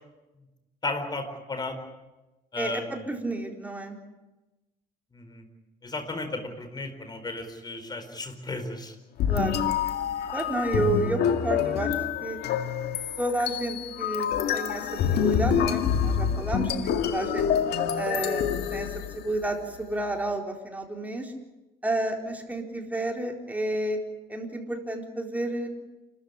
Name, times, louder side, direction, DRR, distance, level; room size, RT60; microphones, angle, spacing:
voice 1, 0.8-1.8 2.5-3.2 5.1-5.4 5.8-8.9, left 2 dB, 25° left, 7 dB, 4.6 m, -34 dB
voice 2, 2.6-4.0 9.3-9.6 10.3-11.9 12.2-12.4 13.2-17.5 18.0-18.4 18.7-21.3 21.8-24.0 24.3-25.7, right 1 dB, 10° right, 2 dB, 4.1 m, -30 dB
sound 1, 9.2-19.5, left 8 dB, 75° left, 2.1 m, -27 dB
28.5 x 14.0 x 9.9 m, 1.1 s
cardioid pair, 110°, 17 cm